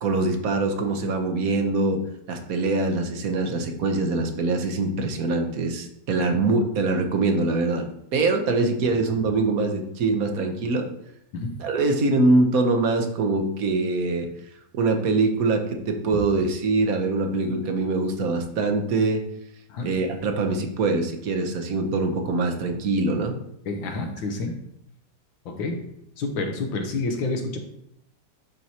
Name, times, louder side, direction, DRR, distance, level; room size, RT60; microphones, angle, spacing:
voice 1, 0.0-2.0 2.3-10.9 11.6-14.3 14.7-19.2 19.8-23.3, right 3 dB, 55° right, 4 dB, 1.1 m, -23 dB
voice 2, 23.7-24.6 25.5-25.8 26.2-27.6, left 3 dB, 85° left, 4 dB, 1.8 m, -28 dB
11.0 x 4.6 x 2.8 m, 0.77 s
omnidirectional pair, 2.1 m